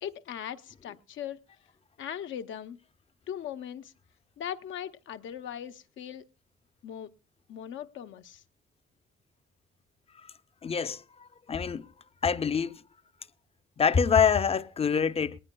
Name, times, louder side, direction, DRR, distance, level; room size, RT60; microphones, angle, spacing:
voice 1, 0.0-1.4 2.0-2.8 3.3-3.9 4.4-6.2 6.8-7.1 7.5-8.4, left 9 dB, 75° left, 0.8 m, -39 dB
voice 2, 10.6-11.0 11.5-11.9 12.2-12.8 13.8-15.4, left 6 dB, 30° left, 0.6 m, -25 dB
19.0 x 19.0 x 2.2 m
cardioid pair, 90°, 20 cm